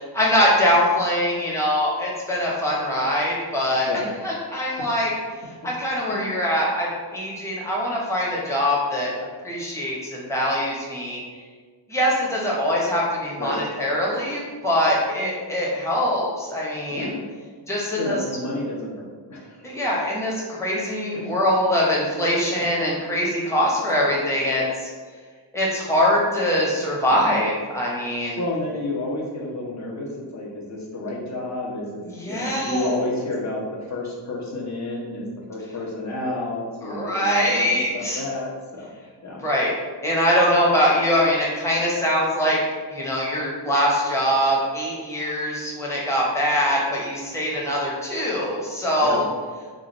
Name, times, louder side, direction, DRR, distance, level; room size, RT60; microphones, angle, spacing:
voice 1, 0.0-3.9 4.2-5.1 5.4-9.1 9.4-11.2 11.9-17.1 17.7-18.2 19.6-24.9 25.5-28.4 32.1-33.1 36.8-38.2 39.4-39.7 40.0-42.6 42.9-49.2, equal, 5° left, -5 dB, 1.0 m, -23 dB
voice 2, 16.9-17.2 18.0-19.7 21.1-21.4 27.1-27.3 28.4-32.0 32.3-38.9 39.2-39.4 49.0-49.2, left 2 dB, 35° left, -3 dB, 1.0 m, -30 dB
3.6 x 2.4 x 4.0 m, 1.5 s
cardioid pair, 85°, 47 cm